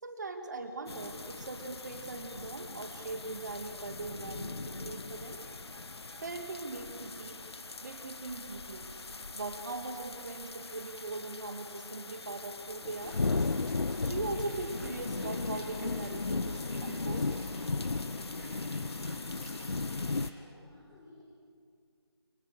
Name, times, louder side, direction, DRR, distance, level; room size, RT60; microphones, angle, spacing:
voice 1, 0.0-8.9 9.3-13.4 14.0-17.3, right 3 dB, 40° right, 5 dB, 2.3 m, -41 dB
sound 1, 0.9-20.3, left 3 dB, 65° left, 0.7 m, -37 dB
sound 2, 12.9-20.3, right 1 dB, 10° right, 4.9 m, -53 dB
voice 2, 18.0-19.1 19.4-21.2, left 2 dB, 10° left, -7 dB, 4.3 m, -56 dB
30.0 x 25.0 x 6.7 m, 2.3 s
figure-of-eight pair, 160°, 14 cm